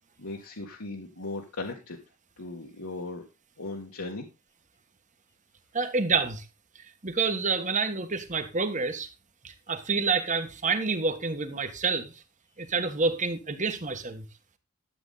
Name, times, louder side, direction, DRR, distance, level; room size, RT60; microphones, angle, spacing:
voice 1, 0.2-2.0 2.4-3.2 3.6-4.3, left 2 dB, 75° left, 1.7 m, -37 dB
voice 2, 5.7-6.4 7.0-9.1 9.4-12.1 12.6-14.3, right 4 dB, 35° right, 1.5 m, -28 dB
12.5 x 8.1 x 4.0 m
head